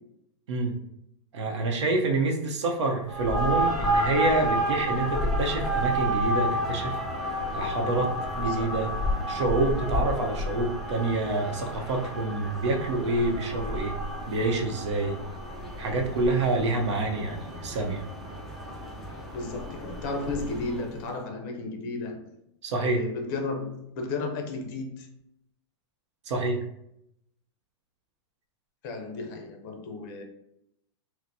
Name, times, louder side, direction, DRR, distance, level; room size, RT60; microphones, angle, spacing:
voice 1, 1.3-8.9 9.3-13.9 14.3-15.2 15.8-18.0 22.6-23.0 26.3-26.6, right 2 dB, 80° right, 2 dB, 0.8 m, -27 dB
sound 1, 3.1-21.0, equal, ahead, 0.5 m, -31 dB
voice 2, 8.4-8.8 19.3-22.2 22.8-25.1 28.8-30.2, left 3 dB, 45° left, 3 dB, 0.7 m, -34 dB
4.2 x 2.1 x 2.7 m, 0.79 s
supercardioid pair, 150°, 15 cm